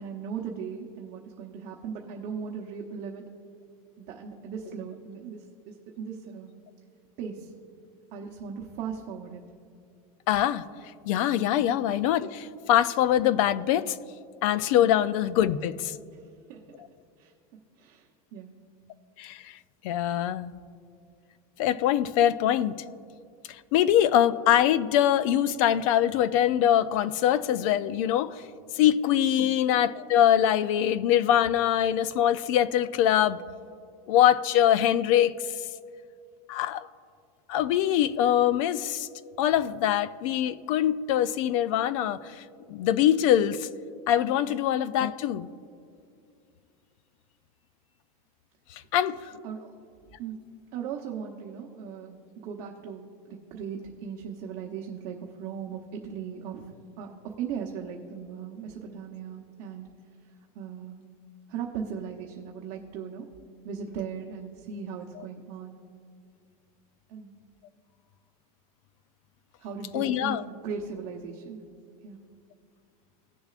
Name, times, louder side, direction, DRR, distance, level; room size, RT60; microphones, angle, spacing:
voice 1, 0.0-3.2 4.0-6.5 7.2-7.5 8.1-9.4 11.6-11.7 14.8-14.9 16.5-16.6 17.2-17.3 17.8-18.5 29.4-29.5 44.4-44.5 49.4-49.7 50.2-50.4 50.7-56.7 57.0-57.1 57.4-59.9 60.5-61.0 61.5-63.3 63.6-65.8 67.1-67.3 69.6-71.6 72.0-72.2, right 6 dB, 45° right, 0 dB, 0.9 m, -38 dB
voice 2, 10.3-10.6 11.1-14.0 14.4-15.9 19.2-19.5 19.8-20.5 21.6-22.7 23.7-28.4 28.7-33.4 34.1-35.3 36.5-36.9 37.5-39.1 39.4-42.4 42.7-43.7 44.1-45.5 48.7-49.4 65.2-65.3 69.9-70.4, left 11 dB, 60° left, 16 dB, 0.5 m, -23 dB
17.5 x 7.0 x 2.5 m, 2.4 s
supercardioid pair, 160°, 19 cm